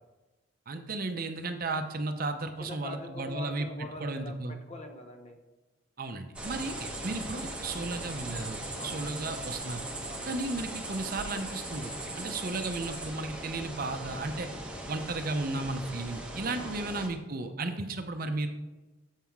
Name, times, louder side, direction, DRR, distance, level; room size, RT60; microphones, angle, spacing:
voice 1, 0.7-3.7 4.0-4.6 6.0-9.9 10.2-14.5 14.9-18.5, right 3 dB, 45° right, 7 dB, 0.6 m, -34 dB
voice 2, 2.6-5.4 6.5-6.7 8.7-9.2 10.0-10.4 16.6-17.0, left 2 dB, 30° left, 4 dB, 0.8 m, -44 dB
sound 1, 6.4-17.1, right 1 dB, 5° right, 1.0 m, -39 dB
7.3 x 5.5 x 4.5 m, 1.2 s
head